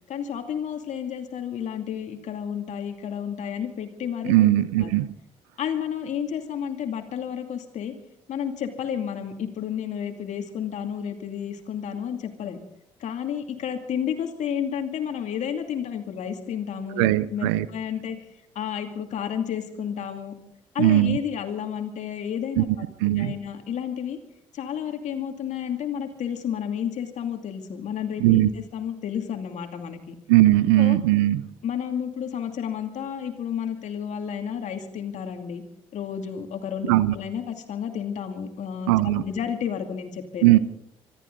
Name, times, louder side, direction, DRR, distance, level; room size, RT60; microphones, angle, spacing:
voice 1, 0.1-4.9 5.6-7.9 8.3-12.6 13.0-18.2 18.5-20.3 20.7-24.2 24.5-30.2 30.8-31.0 31.6-35.6 35.9-40.6, left 8 dB, 65° left, 2.6 m, -31 dB
voice 2, 4.3-5.1 17.0-17.7 20.8-21.2 22.6-22.7 23.0-23.4 28.2-28.5 30.3-31.5 36.9-37.1 38.9-39.2 40.4-40.6, right 16 dB, 85° right, 0.6 m, -19 dB
25.5 x 14.0 x 4.0 m
hypercardioid pair, 50°, 13 cm